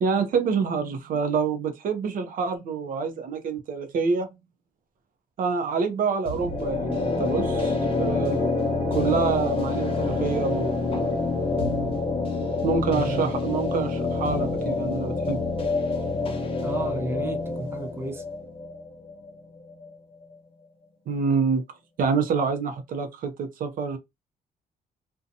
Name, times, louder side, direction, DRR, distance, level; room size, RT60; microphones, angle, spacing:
voice 1, 0.0-4.3 5.4-8.5 8.9-11.1 12.6-15.6 21.1-21.6 22.0-24.0, right 5 dB, 65° right, 0.5 m, -27 dB
sound 1, 6.3-19.9, left 3 dB, 35° left, 0.7 m, -27 dB
voice 2, 12.9-13.3 16.6-18.2, right 2 dB, 15° right, 0.5 m, -32 dB
2.6 x 2.2 x 2.5 m
cardioid pair, 130°, 15 cm